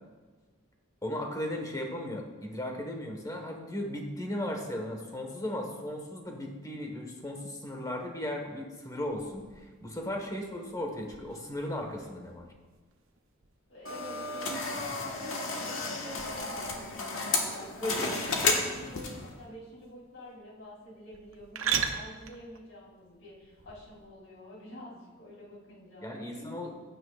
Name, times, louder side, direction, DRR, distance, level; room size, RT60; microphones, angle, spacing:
voice 1, 1.0-12.4 17.8-18.2 26.0-26.7, left 1 dB, 15° left, 2 dB, 1.4 m, -36 dB
sound 1, 9.0-24.1, right 7 dB, 90° right, 0.8 m, -42 dB
voice 2, 13.7-18.1 18.4-26.8, equal, 65° left, -4 dB, 3.4 m, -47 dB
sound 2, 13.9-19.3, left 3 dB, 85° left, 1.6 m, -32 dB
15.0 x 9.3 x 2.5 m, 1.3 s
head